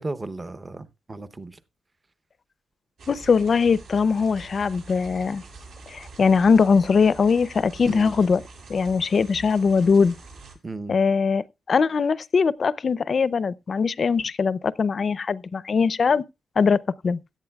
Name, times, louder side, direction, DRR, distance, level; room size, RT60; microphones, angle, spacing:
voice 1, 0.0-1.5 7.9-8.1 10.6-10.9, right 2 dB, 20° right, 0.7 m, -35 dB
sound 1, 3.0-10.5, right 3 dB, 75° right, 6.4 m, -45 dB
voice 2, 3.1-5.4 5.9-8.4 8.7-10.1 10.9-16.2 16.6-17.2, left 5 dB, 45° left, 0.5 m, -21 dB
16.5 x 11.5 x 2.3 m
cardioid pair, 115°, 0 cm